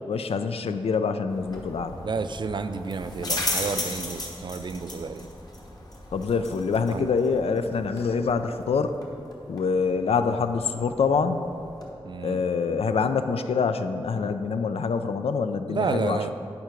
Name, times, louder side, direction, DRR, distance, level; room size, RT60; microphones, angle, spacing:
voice 1, 0.0-1.9 6.1-8.9 9.5-11.5 12.2-16.3, left 5 dB, 90° left, 9 dB, 0.4 m, -25 dB
sound 1, 1.3-11.9, left 2 dB, 40° left, 1.2 m, -36 dB
voice 2, 2.0-5.3 6.9-7.1 12.0-12.4 15.7-16.3, right 4 dB, 50° right, 10 dB, 0.4 m, -30 dB
9.3 x 4.7 x 5.1 m, 2.6 s
wide cardioid pair, 95°, 10 cm